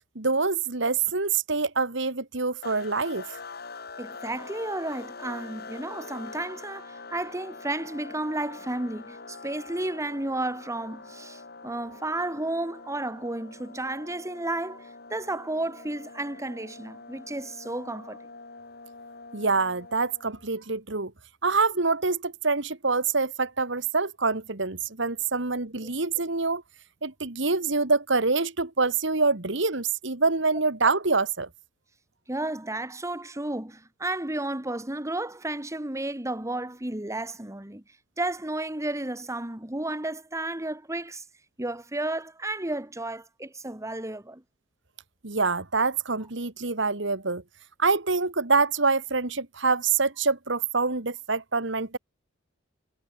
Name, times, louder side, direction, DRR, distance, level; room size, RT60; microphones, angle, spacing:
voice 1, 0.2-3.2 19.3-21.1 21.4-26.6 27.0-31.5 45.2-47.4 47.8-52.0, right 4 dB, 65° right, 2.3 m, -25 dB
sound 1, 2.6-20.5, left 4 dB, 55° left, 6.8 m, -44 dB
voice 2, 4.0-18.2 32.3-37.8 38.2-41.2 41.6-44.4, right 2 dB, 15° right, 1.8 m, -32 dB
head